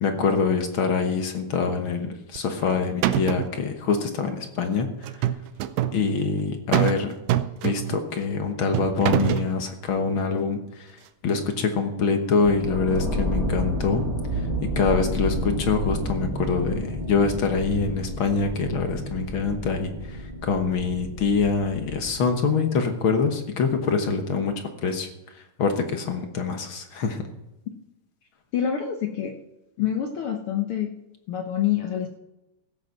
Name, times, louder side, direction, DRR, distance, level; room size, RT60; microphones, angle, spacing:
voice 1, 0.0-4.9 5.9-7.1 7.6-10.9 11.2-14.0 14.7-19.9 20.4-24.5 24.8-25.1 25.6-27.2, left 5 dB, 55° left, 5 dB, 1.5 m, -25 dB
sound 1, 2.4-2.7 3.0-3.6 5.0-6.0 6.7-7.0 7.3-8.1 8.7-9.5, right 12 dB, 85° right, 2.3 m, -24 dB
sound 2, 12.4-22.2, equal, 10° right, 1.6 m, -30 dB
voice 2, 28.5-29.3 29.8-30.9 31.3-32.2, left 9 dB, 75° left, 4 dB, 1.2 m, -26 dB
15.5 x 8.0 x 5.9 m, 0.94 s
omnidirectional pair, 3.7 m